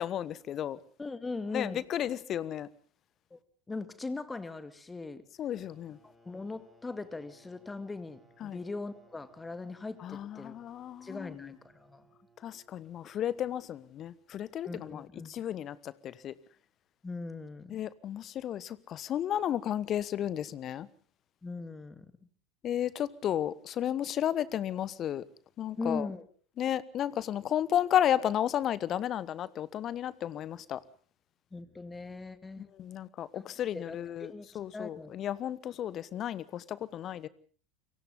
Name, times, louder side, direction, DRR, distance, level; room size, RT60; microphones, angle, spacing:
voice 1, 0.0-0.8 1.5-2.7 5.4-6.0 8.4-8.6 10.0-11.6 12.4-16.3 17.7-20.9 22.6-25.2 25.6-26.1 26.6-30.8 32.6-37.3, left 10 dB, 35° left, 1.2 m, -33 dB
voice 2, 1.0-1.8 3.3-3.4 3.7-5.2 6.3-10.5 11.0-12.1 14.7-15.4 17.0-17.8 21.4-22.1 25.8-26.2 31.5-32.7 33.3-33.5 33.7-34.5 34.7-35.1, left 3 dB, 15° left, 2.3 m, -40 dB
sound 1, 5.5-14.0, right 1 dB, 5° right, 7.6 m, -64 dB
28.5 x 23.5 x 3.8 m
figure-of-eight pair, 75°, 0 cm